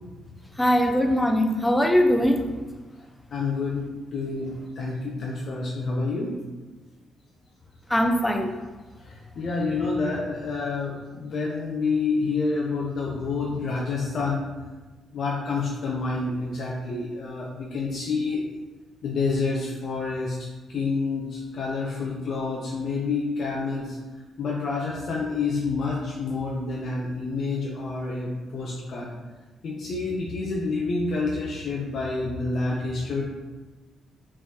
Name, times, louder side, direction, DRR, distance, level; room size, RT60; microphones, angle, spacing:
voice 1, 0.6-2.4 7.9-8.5, equal, 10° left, 4 dB, 0.5 m, -21 dB
voice 2, 3.3-6.4 9.1-14.5 15.1-18.4 19.0-20.4 20.7-24.0 24.4-29.1 29.6-33.2, left 3 dB, 65° left, -3 dB, 0.5 m, -28 dB
3.3 x 3.1 x 2.7 m, 1.2 s
supercardioid pair, 55°, 0 cm